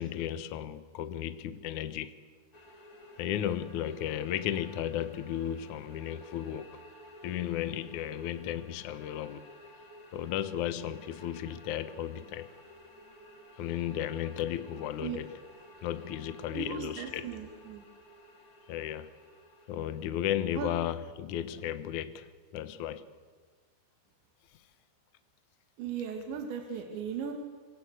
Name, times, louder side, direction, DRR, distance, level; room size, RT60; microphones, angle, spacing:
voice 1, 0.0-2.2 3.2-6.8 7.2-9.4 10.1-12.5 13.6-15.3 15.8-17.3 18.7-19.1 19.7-23.1, left 11 dB, 70° left, 12 dB, 1.9 m, -34 dB
sound 1, 2.5-20.1, left 1 dB, 25° left, 2.5 m, -54 dB
voice 2, 16.5-17.8 20.6-20.7 25.8-27.3, right 7 dB, 80° right, 3 dB, 4.6 m, -37 dB
26.5 x 25.5 x 8.2 m, 1.5 s
omnidirectional pair, 5.1 m